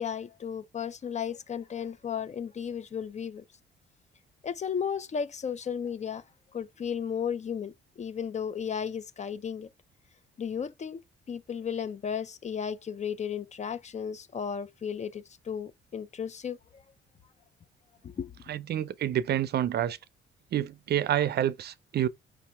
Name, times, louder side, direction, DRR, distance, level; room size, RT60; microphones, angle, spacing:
voice 1, 0.0-3.4 4.4-6.2 6.5-9.7 10.4-11.0 11.3-16.8 18.0-18.3, left 7 dB, 35° left, 0.5 m, -34 dB
voice 2, 18.5-20.0 20.5-22.1, right 11 dB, 55° right, 0.5 m, -28 dB
5.0 x 2.8 x 3.3 m
cardioid pair, 90°, 20 cm